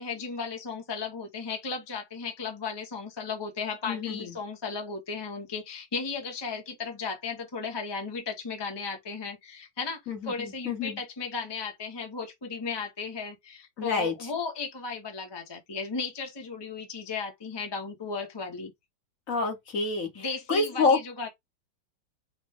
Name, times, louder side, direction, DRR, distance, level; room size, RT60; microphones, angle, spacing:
voice 1, 0.0-18.7 20.1-21.3, left 5 dB, 25° left, 0.5 m, -35 dB
voice 2, 3.9-4.3 10.1-11.0 13.8-14.3 19.3-21.0, left 4 dB, 50° left, 1.4 m, -28 dB
5.2 x 2.2 x 3.4 m
omnidirectional pair, 2.1 m